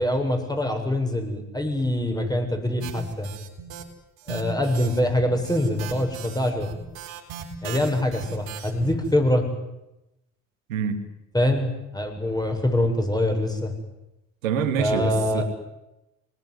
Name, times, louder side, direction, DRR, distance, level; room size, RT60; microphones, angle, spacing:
voice 1, 0.0-3.3 4.3-6.7 7.6-9.5 11.3-13.7 14.8-15.4, left 1 dB, 10° left, 4 dB, 7.7 m, -24 dB
sound 1, 2.8-3.8 4.2-9.1, right 7 dB, 70° right, 4.9 m, -38 dB
voice 2, 14.4-15.4, right 7 dB, 90° right, 7 dB, 2.7 m, -26 dB
25.5 x 20.5 x 9.8 m, 0.93 s
hypercardioid pair, 55°, 39 cm